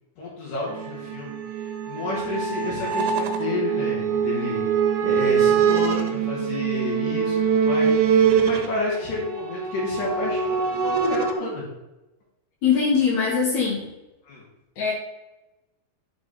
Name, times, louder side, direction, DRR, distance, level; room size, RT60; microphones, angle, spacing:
voice 1, 0.2-1.3 1.9-4.6 5.0-7.9 8.4-11.7 14.3-14.4, left 2 dB, 55° left, -6 dB, 2.5 m, -30 dB
sound 1, 0.7-11.3, right 7 dB, 75° right, 2.9 m, -23 dB
voice 2, 12.6-13.9 14.8-14.9, left 6 dB, 75° left, -3 dB, 1.7 m, -21 dB
10.5 x 5.4 x 4.1 m, 1.0 s
omnidirectional pair, 5.9 m